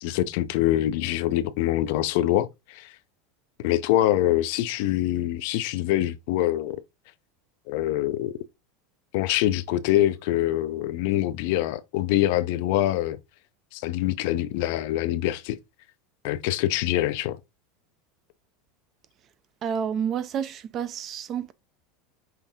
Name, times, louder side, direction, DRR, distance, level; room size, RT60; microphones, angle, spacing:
voice 1, 0.0-2.9 3.6-6.8 7.7-8.3 9.1-13.2 13.7-15.6 16.2-17.4, left 14 dB, 65° left, 0.4 m, -24 dB
voice 2, 19.6-21.5, right 8 dB, 35° right, 0.5 m, -29 dB
5.6 x 2.6 x 3.5 m
supercardioid pair, 135°, 0 cm